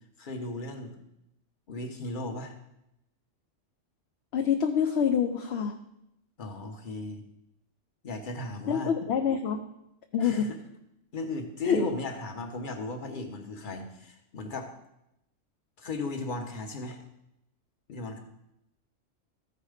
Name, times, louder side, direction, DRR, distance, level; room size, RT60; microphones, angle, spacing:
voice 1, 0.2-1.0 1.7-2.5 6.4-7.2 8.0-8.9 10.2-10.6 11.1-14.7 15.8-17.0 17.9-18.2, left 2 dB, 45° left, 4 dB, 1.2 m, -36 dB
voice 2, 4.3-5.8 8.7-9.6 10.1-10.5 11.7-11.8, left 7 dB, 65° left, 5 dB, 0.8 m, -26 dB
13.5 x 4.9 x 4.9 m, 0.84 s
omnidirectional pair, 1.3 m